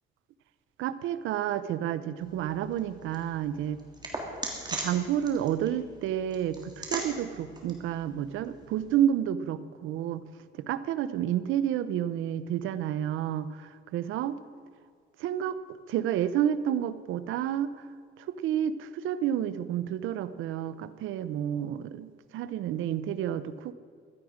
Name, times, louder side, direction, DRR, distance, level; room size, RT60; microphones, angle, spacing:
voice 1, 0.8-3.8 4.2-4.3 4.6-10.2 10.6-14.4 15.2-15.6 15.9-17.7 18.2-23.7, right 10 dB, 90° right, 14 dB, 0.7 m, -30 dB
sound 1, 2.2-9.0, right 2 dB, 20° right, 3.0 m, -41 dB
16.0 x 13.0 x 5.0 m, 2.1 s
cardioid pair, 90°, 20 cm